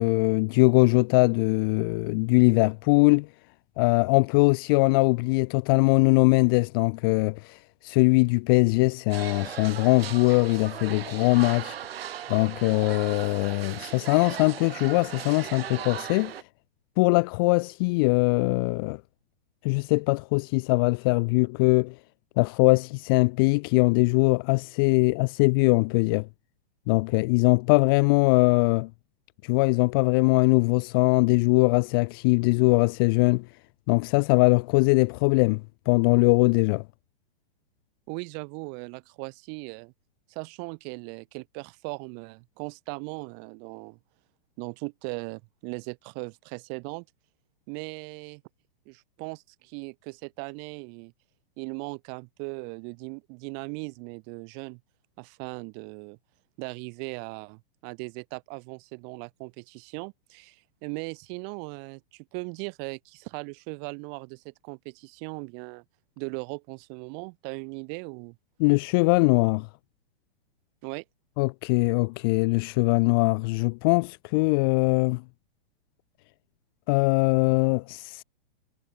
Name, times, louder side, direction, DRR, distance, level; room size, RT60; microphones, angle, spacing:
voice 1, 0.0-3.3 3.8-7.6 7.8-11.8 12.3-16.3 17.0-19.0 19.6-21.9 22.4-26.3 26.9-28.9 29.4-33.4 33.9-35.6 35.9-36.8 68.6-69.7 71.4-75.2 76.9-78.2, left 28 dB, 25° left, 0.4 m, -21 dB
sound 1, 9.1-16.4, right 10 dB, 80° right, 1.9 m, -38 dB
voice 2, 38.1-39.9 40.3-44.0 44.6-47.0 47.7-48.4 48.8-51.1 51.6-54.8 55.2-56.2 56.6-65.8 66.2-68.4 70.8-71.0, right 40 dB or more, 35° right, 1.5 m, -38 dB
hypercardioid pair, 145°, 30 cm